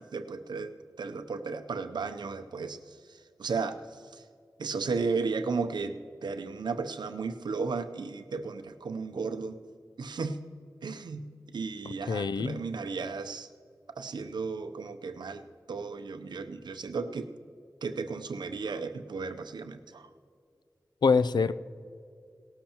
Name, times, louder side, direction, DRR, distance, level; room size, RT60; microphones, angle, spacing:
voice 1, 0.0-4.2 4.6-9.6 10.0-10.4 10.8-11.3 11.5-13.5 14.0-17.3 17.8-20.1, right 4 dB, 90° right, 9 dB, 0.6 m, -34 dB
voice 2, 12.1-12.6 21.0-21.5, left 5 dB, 80° left, 14 dB, 0.4 m, -24 dB
18.0 x 13.0 x 2.9 m, 2.3 s
cardioid pair, 45°, 7 cm